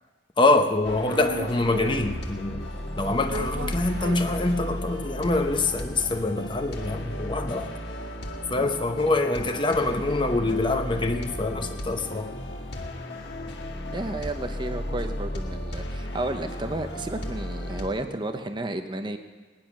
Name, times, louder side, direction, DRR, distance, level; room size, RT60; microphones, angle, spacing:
voice 1, 0.4-2.6 3.0-7.7 8.5-12.3, left 2 dB, 25° left, 6 dB, 0.8 m, -25 dB
sound 1, 0.8-17.9, equal, 60° left, 1.8 m, -35 dB
sound 2, 1.0-2.2 2.5-5.1 5.5-5.6 5.8-10.3 10.6-14.7, right 2 dB, 60° right, 0.8 m, -40 dB
voice 2, 13.9-19.2, right 1 dB, 25° right, 7 dB, 0.8 m, -32 dB
19.0 x 10.5 x 6.0 m, 1.3 s
head